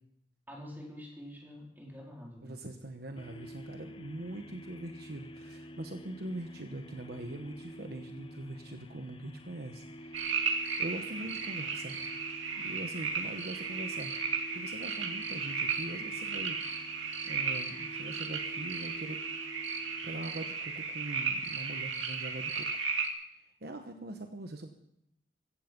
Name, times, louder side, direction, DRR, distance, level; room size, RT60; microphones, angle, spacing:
voice 1, 0.5-2.5, equal, 10° right, -2 dB, 4.5 m, -46 dB
voice 2, 2.4-10.4 10.8-12.0 12.6-16.6 17.2-19.7 20.0-22.7 23.6-24.7, right 1 dB, 55° right, 5 dB, 1.2 m, -42 dB
sound 1, 3.2-21.4, equal, 25° left, 0.8 m, -49 dB
sound 2, 10.1-23.1, right 5 dB, 85° right, 2.4 m, -35 dB
16.0 x 14.5 x 5.3 m, 0.75 s
head